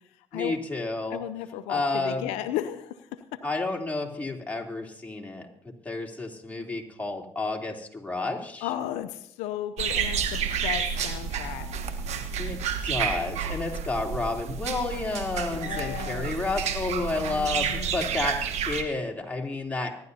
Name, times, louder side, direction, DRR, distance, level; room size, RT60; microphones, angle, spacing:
voice 1, 0.3-1.2 1.7-2.3 3.4-8.7 12.4-19.9, left 3 dB, 15° left, 0 dB, 3.2 m, -31 dB
voice 2, 1.1-3.4 8.6-11.7 15.5-16.3 17.1-18.0, left 12 dB, 85° left, 11 dB, 0.5 m, -34 dB
sound 1, 9.8-18.8, right 7 dB, 75° right, 1.3 m, -30 dB
24.5 x 11.0 x 2.8 m, 0.73 s
supercardioid pair, 55°, 11 cm